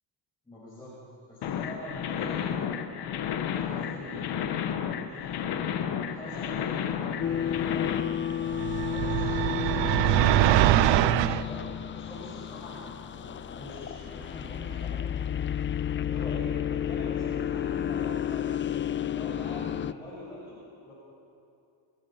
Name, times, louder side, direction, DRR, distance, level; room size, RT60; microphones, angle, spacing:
voice 1, 0.5-1.0 1.3-2.7 3.5-5.3 6.0-8.2 8.4-9.6 10.9-11.7 11.9-14.9 16.0-20.9, left 1 dB, 10° left, -10 dB, 7.2 m, -43 dB
sound 1, 1.4-8.0, left 8 dB, 65° left, 1.4 m, -32 dB
sound 2, 7.2-19.9, left 9 dB, 30° left, 0.4 m, -31 dB
sound 3, 8.5-11.4, right 16 dB, 85° right, 0.7 m, -23 dB
29.0 x 18.5 x 5.9 m, 2.6 s
cardioid pair, 140°, 43 cm